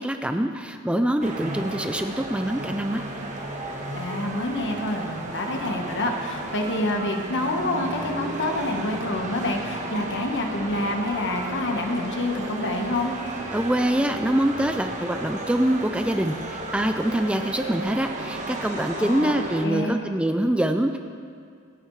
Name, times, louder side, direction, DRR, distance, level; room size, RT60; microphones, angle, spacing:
voice 1, 0.0-3.0 13.5-21.0, right 1 dB, 5° right, 6 dB, 0.4 m, -24 dB
sound 1, 1.2-19.7, right 2 dB, 35° right, 1.4 m, -34 dB
voice 2, 3.9-13.1 19.0-20.0, left 1 dB, 60° left, 3 dB, 1.4 m, -27 dB
26.0 x 9.1 x 3.3 m, 2.3 s
head